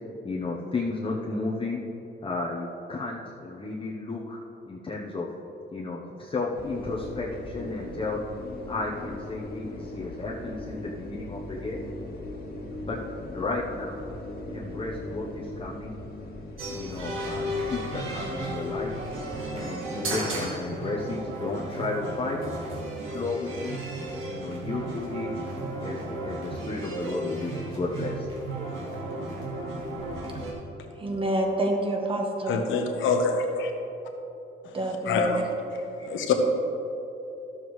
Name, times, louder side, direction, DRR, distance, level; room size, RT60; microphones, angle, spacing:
voice 1, 0.2-1.8 2.2-4.4 4.7-5.3 5.7-8.2 8.7-11.8 12.9-13.0 13.3-14.0 14.5-15.9 16.7-19.0 19.5-22.5 23.0-23.8 24.2-25.3 25.8-28.3, left 3 dB, 25° left, -4 dB, 0.9 m, -33 dB
sound 1, 6.5-19.4, left 1 dB, 55° left, 1.8 m, -39 dB
sound 2, 16.6-30.5, right 1 dB, 85° right, 1.7 m, -34 dB
voice 2, 31.0-32.7 34.7-35.4 36.0-36.1, right 1 dB, 25° right, 2 dB, 1.3 m, -27 dB
voice 3, 32.5-33.7 35.1-35.4 35.7-36.3, left 4 dB, 80° left, 4 dB, 1.0 m, -26 dB
12.5 x 7.1 x 3.2 m, 3.0 s
cardioid pair, 90°, 20 cm